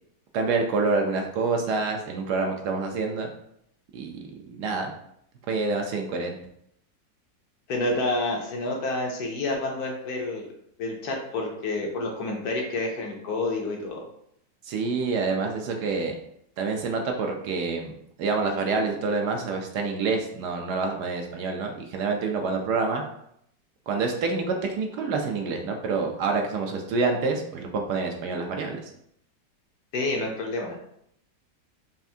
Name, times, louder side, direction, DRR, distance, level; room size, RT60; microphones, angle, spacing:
voice 1, 0.3-3.3 3.9-4.2 4.5-4.9 5.5-6.4 14.6-16.1 16.6-23.0 23.9-28.8, right 4 dB, 70° right, 2 dB, 1.1 m, -27 dB
voice 2, 7.7-10.5 10.8-14.0 29.9-30.9, left 2 dB, 65° left, 0 dB, 1.1 m, -29 dB
5.6 x 2.5 x 2.7 m, 0.72 s
omnidirectional pair, 1.9 m